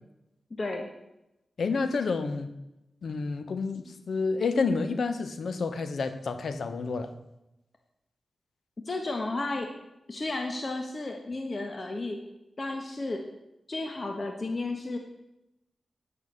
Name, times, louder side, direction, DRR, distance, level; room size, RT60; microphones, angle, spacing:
voice 1, 0.5-0.9 8.8-9.7 10.1-12.2 12.6-13.2 13.7-15.0, left 2 dB, 45° left, 3 dB, 1.4 m, -33 dB
voice 2, 1.6-2.5 3.0-7.1, left 4 dB, 75° left, 10 dB, 1.0 m, -29 dB
8.9 x 6.9 x 8.3 m, 0.91 s
cardioid pair, 50°, 0 cm